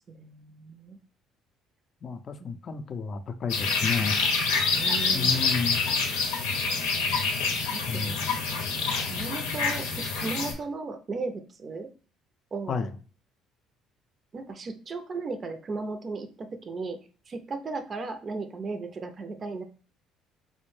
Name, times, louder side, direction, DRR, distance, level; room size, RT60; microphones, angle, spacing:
voice 1, 0.1-1.0 2.4-2.5 4.7-5.5 7.7-8.2 9.0-11.9 12.5-12.8 14.3-17.0 17.3-19.6, right 3 dB, 40° right, 8 dB, 0.5 m, -36 dB
voice 2, 2.0-4.2 5.1-5.9 7.9-8.2 12.7-12.9, left 5 dB, 45° left, 9 dB, 0.4 m, -31 dB
sound 1, 3.5-10.5, left 4 dB, 85° left, 0.7 m, -27 dB
4.2 x 2.1 x 3.1 m, 0.40 s
hypercardioid pair, 60°, 0 cm